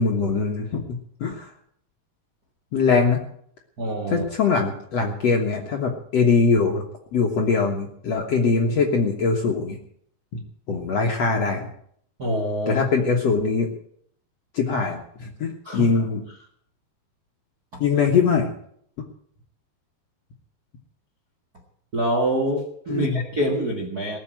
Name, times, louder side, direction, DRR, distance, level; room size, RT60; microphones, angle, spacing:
voice 1, 0.0-1.5 2.7-3.2 4.1-6.8 7.1-9.8 10.3-10.4 10.7-11.7 12.7-13.7 14.5-16.2 17.8-18.5 22.9-23.2, left 4 dB, 60° left, 1 dB, 1.8 m, -22 dB
voice 2, 3.8-4.2 12.2-12.8 15.6-15.9 17.7-17.8 21.9-24.2, right 1 dB, 45° right, 0 dB, 1.2 m, -25 dB
19.0 x 6.9 x 9.0 m, 0.65 s
omnidirectional pair, 4.7 m